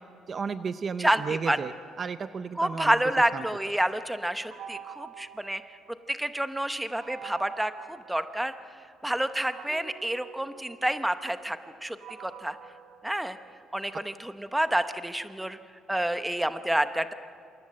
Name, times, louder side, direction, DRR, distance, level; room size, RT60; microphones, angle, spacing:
voice 1, 0.3-1.7 2.0-3.0 3.3-3.4, right 5 dB, 30° right, 11 dB, 0.6 m, -33 dB
voice 2, 1.0-1.6 2.6-5.6 6.1-8.5 9.0-12.6 13.0-13.4 13.7-15.6 15.9-17.1, right 1 dB, 5° right, 9 dB, 0.8 m, -28 dB
sound 1, 4.5-6.3 7.0-8.8 9.5-13.8, right 9 dB, 85° right, 2.5 m, -47 dB
28.0 x 27.0 x 7.6 m, 2.3 s
cardioid pair, 165°, 0 cm